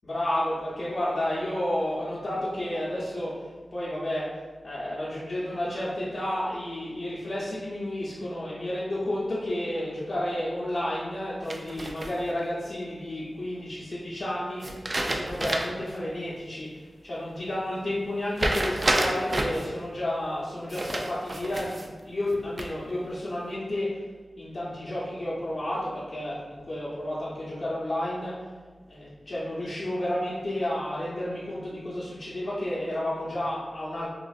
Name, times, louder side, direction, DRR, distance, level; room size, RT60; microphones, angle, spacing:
voice 1, 0.0-3.4 3.7-4.3 4.6-24.0 24.4-28.3 28.9-34.1, left 1 dB, 60° left, -9 dB, 0.7 m, -31 dB
sound 1, 11.5-12.4 14.6-15.9 16.3-16.4 18.4-19.7 20.7-21.9 22.3-22.9, right 1 dB, 40° right, 0.3 m, -29 dB
3.7 x 2.4 x 2.4 m, 1.4 s
wide cardioid pair, 100°, 0 cm